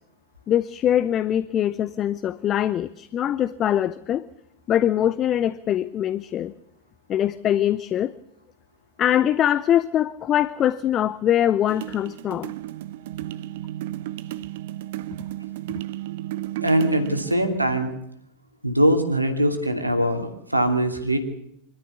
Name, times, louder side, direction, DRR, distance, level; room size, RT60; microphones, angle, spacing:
voice 1, 0.5-4.2 4.7-6.5 7.1-8.1 9.0-12.5, left 11 dB, 30° left, 16 dB, 0.7 m, -23 dB
sound 1, 11.7-17.4, right 14 dB, 55° right, 0.9 m, -33 dB
voice 2, 16.6-17.9 18.6-21.2, right 1 dB, 85° right, 6 dB, 2.8 m, -22 dB
25.5 x 13.0 x 8.5 m, 0.80 s
figure-of-eight pair, 90°, 0 cm